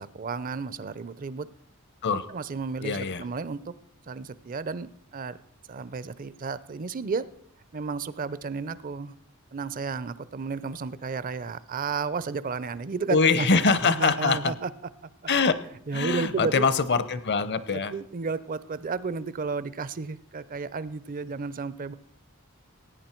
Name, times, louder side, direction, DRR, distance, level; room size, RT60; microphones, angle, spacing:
voice 1, 0.0-1.5 2.3-3.7 4.1-5.4 5.7-7.2 7.7-9.1 9.5-13.5 13.8-14.7 15.9-16.7 17.7-21.9, right 4 dB, 40° right, 17 dB, 0.5 m, -32 dB
voice 2, 2.8-3.2 13.1-14.5 15.3-15.5 15.9-17.9, left 4 dB, 50° left, 15 dB, 0.8 m, -23 dB
16.0 x 9.4 x 4.4 m, 0.67 s
head